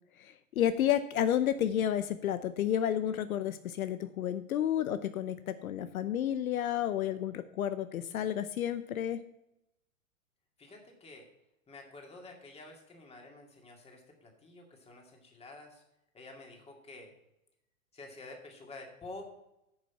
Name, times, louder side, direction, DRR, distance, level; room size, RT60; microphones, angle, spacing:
voice 1, 0.2-9.2, left 10 dB, 75° left, 12 dB, 0.7 m, -31 dB
voice 2, 10.6-11.3 11.7-15.8 16.1-17.1 17.9-19.2, left 2 dB, 15° left, 1 dB, 2.3 m, -49 dB
9.8 x 6.5 x 5.9 m, 0.85 s
hypercardioid pair, 115°, 42 cm